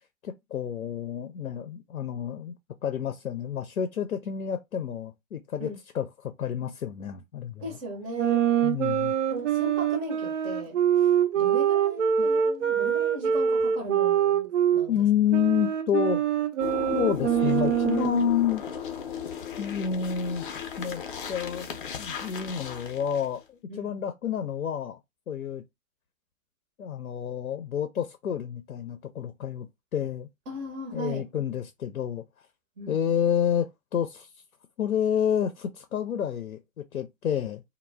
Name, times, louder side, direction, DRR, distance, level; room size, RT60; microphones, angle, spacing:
voice 1, 0.2-2.5 2.8-7.6 8.6-9.1 12.2-12.3 14.9-16.2 16.9-18.6 19.6-20.5 20.8-21.7 22.0-25.0 25.3-25.6 26.8-29.7 29.9-30.3 30.9-32.2 32.9-34.3 34.8-37.6, left 9 dB, 90° left, 0.5 m, -29 dB
voice 2, 7.6-8.4 9.3-15.0 23.7-24.0 30.5-31.2 32.8-33.0, right 1 dB, 20° right, 0.6 m, -37 dB
sound 1, 8.2-14.9 15.3-18.3, right 9 dB, 65° right, 0.6 m, -24 dB
sound 2, 16.6-23.4, left 8 dB, 40° left, 0.5 m, -36 dB
2.1 x 2.1 x 3.3 m
hypercardioid pair, 130°, 41 cm